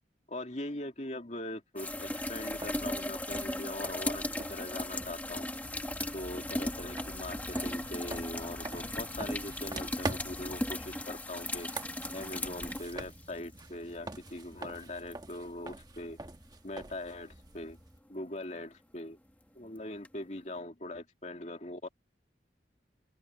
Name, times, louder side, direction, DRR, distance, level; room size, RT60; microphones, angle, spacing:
voice 1, 0.3-5.5 6.1-11.7 12.1-16.2 16.6-17.8 18.1-19.2 19.5-21.8, left 1 dB, 40° left, 2.6 m, -41 dB
sound 1, 1.8-13.6 15.1-15.2 20.0-20.1, left 1 dB, 10° left, 1.4 m, -37 dB
sound 2, 1.9-18.0, right 2 dB, 20° right, 1.2 m, -45 dB
sound 3, 5.6-11.0, equal, 55° left, 5.3 m, -50 dB
open air
head